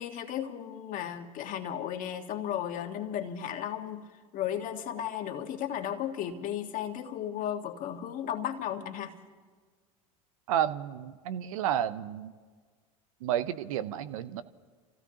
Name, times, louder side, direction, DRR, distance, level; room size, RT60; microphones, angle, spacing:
voice 1, 0.0-4.0 4.3-9.1, left 10 dB, 50° left, 5 dB, 1.6 m, -35 dB
voice 2, 10.5-12.3 13.2-14.4, right 10 dB, 75° right, 14 dB, 0.7 m, -31 dB
30.0 x 15.5 x 2.9 m, 1.5 s
hypercardioid pair, 85°, 18 cm